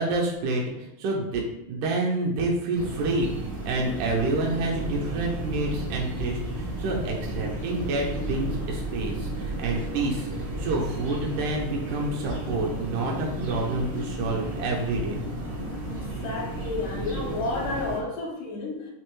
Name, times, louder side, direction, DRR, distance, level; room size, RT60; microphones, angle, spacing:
voice 1, 0.0-1.4 1.7-3.4 3.7-15.2, right 2 dB, 85° right, -1 dB, 2.1 m, -28 dB
sound 1, 2.8-18.0, right 1 dB, 60° right, 0.8 m, -33 dB
voice 2, 16.2-18.9, left 3 dB, 85° left, -3 dB, 2.3 m, -31 dB
5.3 x 2.2 x 2.9 m, 0.85 s
omnidirectional pair, 3.6 m